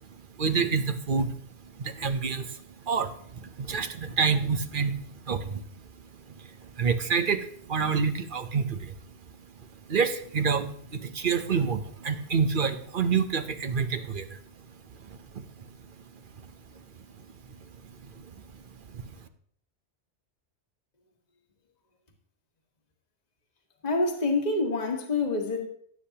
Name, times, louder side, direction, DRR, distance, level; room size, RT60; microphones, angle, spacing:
voice 1, 0.0-5.7 6.1-9.1 9.9-16.0 16.4-16.5 17.2-19.3, right 5 dB, 50° right, 9 dB, 0.9 m, -29 dB
voice 2, 23.8-25.7, left 3 dB, 35° left, 2 dB, 1.5 m, -26 dB
16.0 x 8.4 x 2.9 m, 0.62 s
omnidirectional pair, 1.2 m